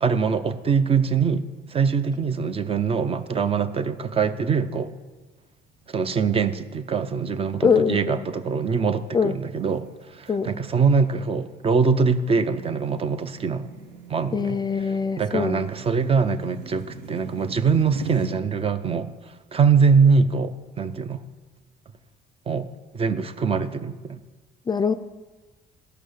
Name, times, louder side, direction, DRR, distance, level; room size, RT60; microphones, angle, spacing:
voice 1, 0.0-4.9 5.9-13.7 14.1-14.6 15.2-21.2 22.5-22.7 22.9-24.2, right 5 dB, 35° right, 11 dB, 0.6 m, -23 dB
sound 1, 5.6-18.3, right 4 dB, 85° right, 1.7 m, -45 dB
voice 2, 7.6-8.2 9.1-9.3 10.3-10.5 14.3-15.6 24.7-24.9, left 6 dB, 25° left, 11 dB, 0.4 m, -23 dB
13.5 x 5.6 x 6.5 m, 1.3 s
cardioid pair, 110°, 17 cm